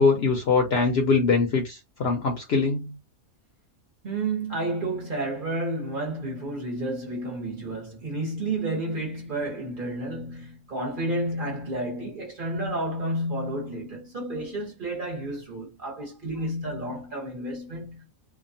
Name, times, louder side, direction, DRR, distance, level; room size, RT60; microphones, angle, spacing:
voice 1, 0.0-2.9, left 4 dB, 60° left, 0.7 m, -22 dB
voice 2, 4.0-18.0, right 1 dB, 40° right, 1.1 m, -31 dB
2.8 x 2.3 x 2.6 m
omnidirectional pair, 1.5 m